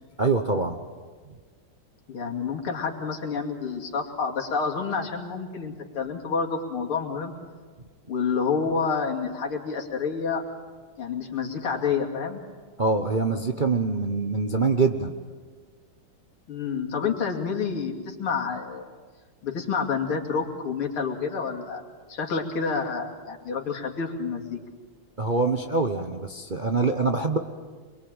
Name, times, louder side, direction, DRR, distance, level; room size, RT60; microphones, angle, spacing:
voice 1, 0.2-0.8 12.8-15.1 25.2-27.4, right 3 dB, 35° right, 5 dB, 0.8 m, -24 dB
voice 2, 2.1-7.4 8.1-10.4 11.0-12.4 16.5-18.9 19.4-21.8 22.1-24.6, left 5 dB, 85° left, 1 dB, 3.5 m, -28 dB
27.0 x 22.5 x 9.0 m, 1.5 s
omnidirectional pair, 2.3 m